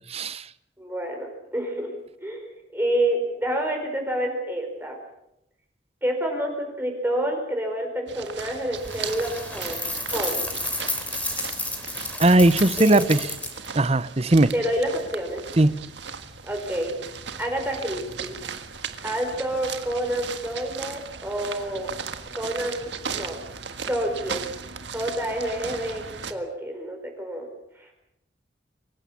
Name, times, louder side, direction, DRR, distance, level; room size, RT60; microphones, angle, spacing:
voice 1, 0.1-0.5 12.2-13.3 13.7-14.5 15.6-15.7, right 2 dB, 35° right, 16 dB, 0.8 m, -18 dB
voice 2, 0.8-1.9 2.2-5.0 6.0-10.5 12.8-13.0 14.5-15.4 16.5-17.0 17.4-18.3 19.0-21.9 22.3-23.4 23.9-24.5 24.9-26.0 26.3-27.5 27.8-27.9, right 1 dB, 10° right, 2 dB, 4.5 m, -28 dB
sound 1, 8.1-26.3, right 6 dB, 75° right, 1.7 m, -37 dB
sound 2, 8.8-13.7, left 2 dB, 10° left, 3.3 m, -31 dB
25.0 x 15.5 x 8.5 m, 0.83 s
head